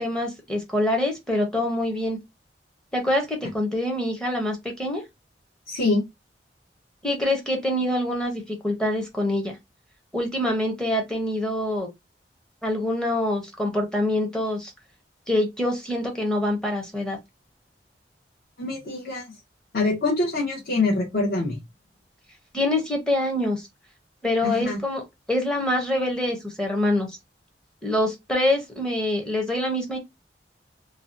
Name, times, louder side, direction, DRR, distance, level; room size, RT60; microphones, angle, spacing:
voice 1, 0.0-2.2 2.9-5.0 7.0-9.6 10.1-11.9 12.6-14.7 15.3-17.2 22.5-23.7 24.2-25.0 25.3-27.2 27.8-30.0, left 1 dB, 5° left, 0.5 m, -25 dB
voice 2, 5.7-6.0 18.6-19.3 19.7-21.6 24.4-24.8, left 3 dB, 60° left, 0.8 m, -24 dB
2.6 x 2.0 x 2.4 m
head